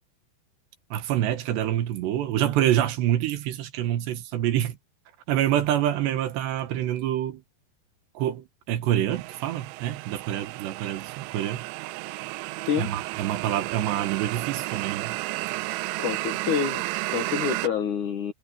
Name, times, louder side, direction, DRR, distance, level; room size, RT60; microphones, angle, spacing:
voice 1, 0.9-4.8 5.3-7.4 8.2-11.6 12.8-15.1, right 12 dB, 75° right, 3.4 m, -26 dB
sound 1, 9.1-17.7, right 22 dB, 90° right, 3.0 m, -33 dB
voice 2, 16.0-18.3, left 7 dB, 60° left, 2.2 m, -27 dB
omnidirectional pair, 5.3 m